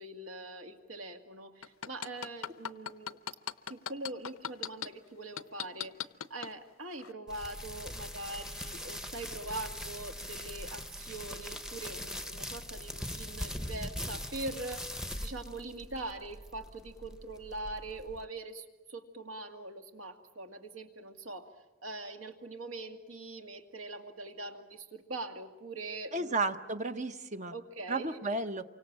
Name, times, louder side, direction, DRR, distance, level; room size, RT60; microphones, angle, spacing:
voice 1, 0.0-3.2 3.7-14.9 15.2-21.5 21.8-26.6 27.5-28.2, right 2 dB, 70° right, 5 dB, 2.3 m, -43 dB
sound 1, 1.6-4.9 5.4-6.5 7.0-7.1, left 8 dB, 80° left, 0.8 m, -37 dB
sound 2, 7.3-18.3, equal, 5° right, 0.9 m, -41 dB
voice 2, 26.1-27.5 27.9-28.6, right 3 dB, 35° right, 8 dB, 0.9 m, -33 dB
29.0 x 25.0 x 7.5 m, 1.1 s
head